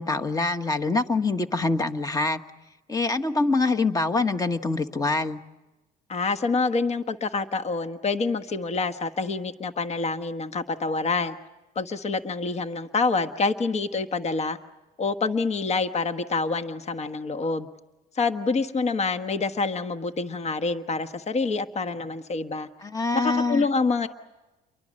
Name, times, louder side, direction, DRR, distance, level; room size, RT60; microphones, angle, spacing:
voice 1, 0.0-2.4 2.9-5.4 22.8-23.7, left 3 dB, 20° left, 9 dB, 1.5 m, -25 dB
voice 2, 6.1-11.4 11.7-14.6 15.0-17.7 18.1-22.7 23.1-24.1, left 4 dB, 40° left, 8 dB, 1.4 m, -27 dB
30.0 x 23.5 x 6.5 m, 1.1 s
cardioid pair, 110°, 17 cm